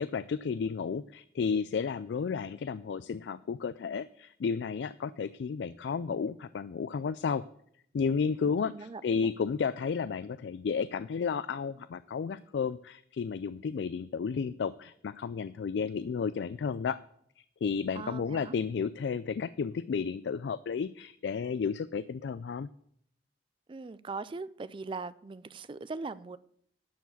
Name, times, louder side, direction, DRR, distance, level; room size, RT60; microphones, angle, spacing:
voice 1, 0.0-7.4 7.9-17.0 17.6-22.7, left 6 dB, 75° left, 0.3 m, -32 dB
voice 2, 8.4-9.3 17.9-18.6 23.7-26.4, right 3 dB, 30° right, 0.3 m, -40 dB
12.0 x 4.8 x 8.3 m
head